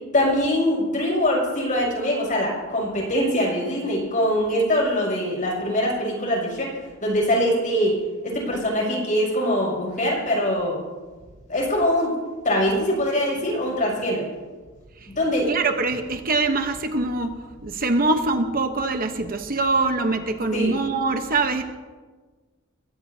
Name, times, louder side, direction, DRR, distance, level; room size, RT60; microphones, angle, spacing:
voice 1, 0.1-6.7 7.0-8.0 8.2-10.8 11.5-12.1 12.4-14.2 15.1-15.5 20.5-20.7, equal, 40° left, -2 dB, 6.4 m, -23 dB
voice 2, 15.5-21.6, right 3 dB, 45° right, 6 dB, 1.0 m, -23 dB
22.5 x 17.5 x 2.8 m, 1.4 s
head